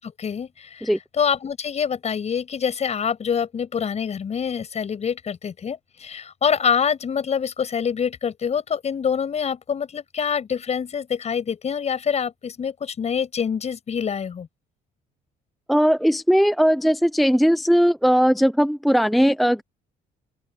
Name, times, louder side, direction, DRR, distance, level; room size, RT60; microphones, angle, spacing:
voice 1, 0.0-14.5, left 7 dB, 40° left, 7.3 m, -26 dB
voice 2, 15.7-19.6, equal, ahead, 0.6 m, -18 dB
open air
cardioid pair, 110°, 17 cm